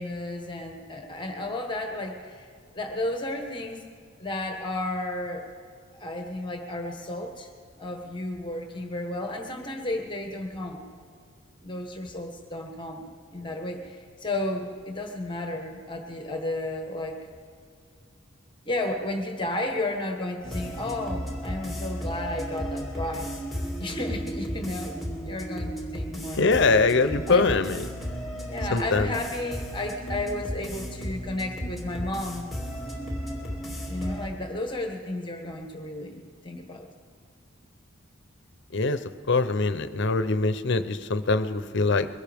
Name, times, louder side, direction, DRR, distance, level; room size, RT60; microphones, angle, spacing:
voice 1, 0.0-2.5 2.7-3.8 4.2-5.5 5.9-7.5 7.8-10.9 11.6-13.1 13.3-17.2 18.6-23.3 23.8-26.7 27.3-27.5 28.3-32.5 33.9-36.9, left 1 dB, 25° left, 3 dB, 1.3 m, -33 dB
sound 1, 20.4-34.3, equal, ahead, 2.4 m, -34 dB
voice 2, 26.4-27.9 28.7-29.1 38.7-39.0 39.3-42.1, left 3 dB, 60° left, 11 dB, 0.7 m, -23 dB
22.5 x 17.0 x 3.5 m, 2.1 s
head